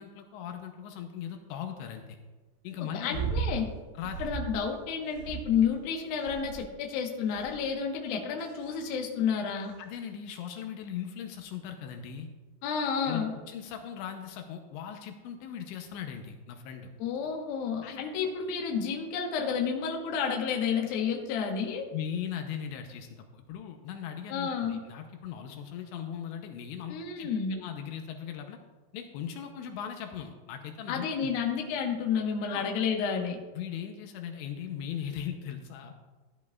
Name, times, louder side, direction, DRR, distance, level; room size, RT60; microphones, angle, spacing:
voice 1, 0.0-2.2 2.6-3.2 4.0-4.2 9.8-12.3 13.0-16.9 17.8-18.3 21.9-28.6 28.9-31.4 32.5-32.7 33.5-36.0, left 8 dB, 85° left, 4 dB, 2.9 m, -39 dB
voice 2, 2.9-3.7 4.2-9.7 12.6-13.3 17.0-21.9 24.3-24.8 26.9-27.6 30.9-33.4, left 6 dB, 70° left, 1 dB, 2.5 m, -30 dB
sound 1, 3.1-3.6 4.0-4.6 5.1-5.8 6.2-6.7 7.4-7.7 8.4-8.8 9.7-9.8, right 6 dB, 80° right, 3.4 m, -35 dB
16.0 x 10.5 x 2.4 m, 1.3 s
omnidirectional pair, 5.3 m